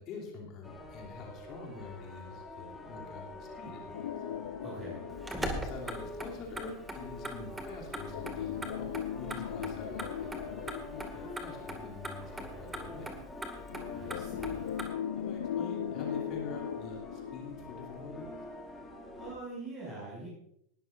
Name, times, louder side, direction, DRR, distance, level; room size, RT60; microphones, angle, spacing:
voice 1, 0.0-4.1 5.4-13.1 15.1-18.2, left 3 dB, 35° left, -1 dB, 2.8 m, -45 dB
sound 1, 0.6-19.3, left 2 dB, 10° left, 2.4 m, -47 dB
sound 2, 3.9-6.6 8.1-12.5 13.7-18.6 19.0-19.1 19.7-19.8, left 10 dB, 60° left, 0.4 m, -39 dB
voice 2, 4.6-5.1 13.9-14.7 19.1-20.3, right 2 dB, 30° right, -6 dB, 6.1 m, -44 dB
Motor vehicle (road), 5.1-14.9, right 1 dB, 10° right, 2.0 m, -42 dB
19.5 x 12.5 x 2.6 m, 0.74 s
figure-of-eight pair, 90°, 0 cm